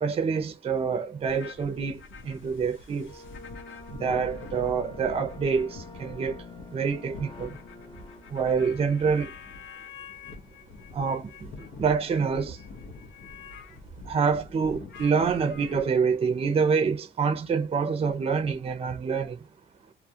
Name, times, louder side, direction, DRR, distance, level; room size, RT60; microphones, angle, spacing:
voice 1, 0.0-3.1 4.0-6.4 6.7-7.6 8.3-9.3 10.9-12.6 14.1-19.4, right 5 dB, 30° right, 0.5 m, -26 dB
sound 1, 1.3-15.8, left 4 dB, 75° left, 0.7 m, -45 dB
sound 2, 3.1-8.4, left 3 dB, 25° left, 0.7 m, -46 dB
2.3 x 2.0 x 2.6 m
cardioid pair, 90°, 20 cm